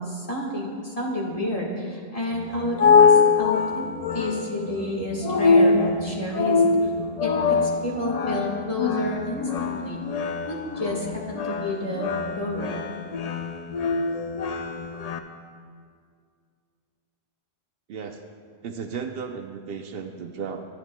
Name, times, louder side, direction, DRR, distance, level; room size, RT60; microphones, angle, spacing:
voice 1, 0.0-6.9 7.2-10.0 10.5-12.1 12.3-12.8, left 1 dB, 35° left, -3 dB, 1.6 m, -30 dB
sound 1, 2.3-15.2, left 5 dB, 50° left, 0.5 m, -23 dB
voice 2, 17.9-18.2 18.6-20.7, right 6 dB, 70° right, 6 dB, 0.7 m, -34 dB
14.0 x 9.4 x 2.2 m, 2.1 s
omnidirectional pair, 1.1 m